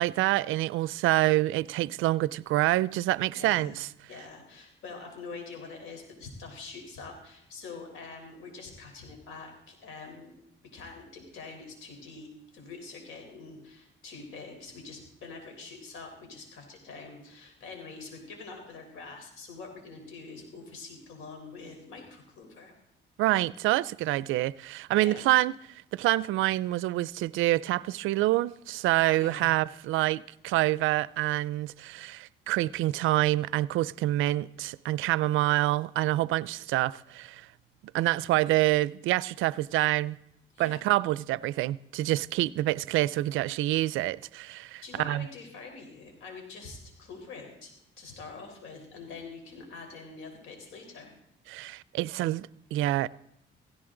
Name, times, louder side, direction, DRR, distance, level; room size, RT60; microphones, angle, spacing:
voice 1, 0.0-3.9 23.2-25.5 25.9-37.5 37.9-40.2 40.6-45.3 51.5-53.1, right 16 dB, 85° right, 0.4 m, -27 dB
voice 2, 3.3-3.8 4.1-10.3 10.7-22.7 25.0-25.2 29.2-29.5 40.5-40.8 44.8-51.1, left 4 dB, 90° left, 4.0 m, -45 dB
17.0 x 16.0 x 3.8 m
cardioid pair, 90°, 20 cm